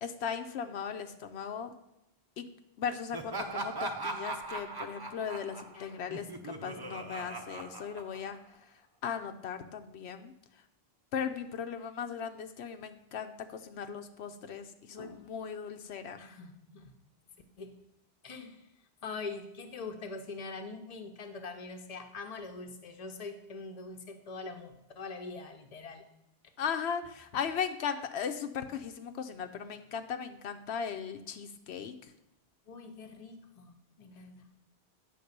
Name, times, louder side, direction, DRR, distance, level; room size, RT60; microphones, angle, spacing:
voice 1, 0.0-1.7 2.4-2.5 2.8-8.4 9.0-10.3 11.1-16.2 26.6-32.0, left 7 dB, 85° left, 7 dB, 0.9 m, -37 dB
Laughter, 3.1-8.6, right 2 dB, 25° right, 0.6 m, -39 dB
voice 2, 5.7-6.0 15.0-15.2 16.2-17.0 17.6-17.8 18.2-18.7 19.0-26.0 32.7-34.5, left 4 dB, 40° left, 5 dB, 0.9 m, -43 dB
9.4 x 3.6 x 6.6 m, 0.84 s
omnidirectional pair, 1.1 m